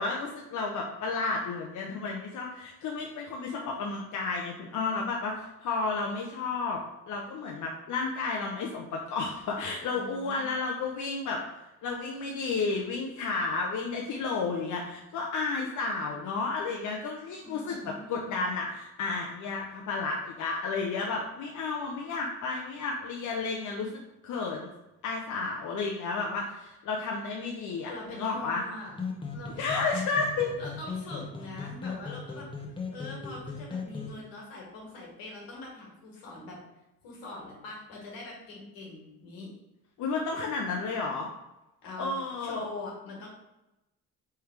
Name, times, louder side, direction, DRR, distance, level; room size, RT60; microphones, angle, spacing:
voice 1, 0.0-6.8 7.1-11.4 11.8-24.7 25.0-28.6 29.6-30.5 40.0-41.3 42.0-42.7, left 4 dB, 60° left, 0 dB, 0.7 m, -32 dB
voice 2, 9.9-10.5 17.4-18.4 27.8-28.9 29.3-29.7 30.6-32.5 32.9-36.6 37.0-39.5 41.8-43.3, left 2 dB, 85° left, -2 dB, 1.7 m, -43 dB
sound 1, 28.9-34.1, left 4 dB, 15° left, 1.0 m, -38 dB
3.5 x 3.3 x 4.6 m, 0.94 s
supercardioid pair, 75°, 34 cm